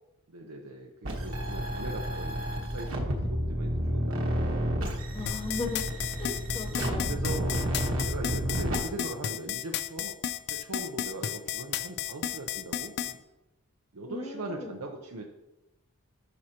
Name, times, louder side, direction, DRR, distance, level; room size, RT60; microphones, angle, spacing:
voice 1, 0.3-4.7 6.7-7.6 8.0-10.2 10.5-13.2 13.9-15.2, right 2 dB, 85° right, 1 dB, 0.7 m, -40 dB
sound 1, 1.0-8.8, equal, 60° right, 1.3 m, -31 dB
voice 2, 5.1-5.8 6.2-7.2 14.1-14.8, left 3 dB, 20° left, 4 dB, 0.8 m, -37 dB
sound 2, 5.3-13.1, left 10 dB, 50° left, 0.4 m, -32 dB
11.0 x 6.3 x 2.9 m, 0.99 s
head